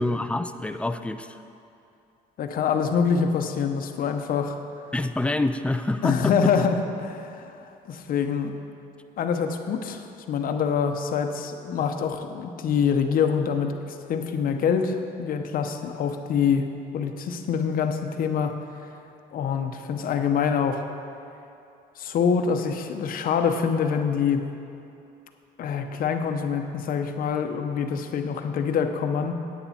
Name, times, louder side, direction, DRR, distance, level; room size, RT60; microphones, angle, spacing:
voice 1, 0.0-1.4 4.9-6.5, left 2 dB, 5° left, 9 dB, 0.4 m, -27 dB
voice 2, 2.4-4.6 6.0-7.5 7.9-8.5 9.2-16.7 16.9-18.5 19.3-20.8 22.0-24.4 25.6-29.3, left 6 dB, 55° left, 6 dB, 0.8 m, -25 dB
9.9 x 9.3 x 4.3 m, 2.7 s
cardioid pair, 110°, 17 cm